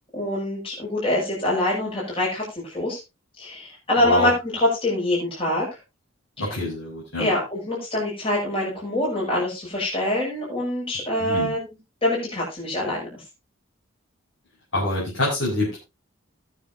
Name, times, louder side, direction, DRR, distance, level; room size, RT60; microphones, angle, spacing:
voice 1, 0.1-3.0 3.4-5.7 7.2-11.7 12.0-13.0, left 1 dB, 25° left, -6 dB, 7.1 m, -25 dB
voice 2, 4.0-4.3 6.4-7.3 11.2-11.5 14.7-15.8, left 2 dB, 65° left, -5 dB, 6.0 m, -26 dB
21.0 x 7.6 x 2.8 m, 0.25 s
head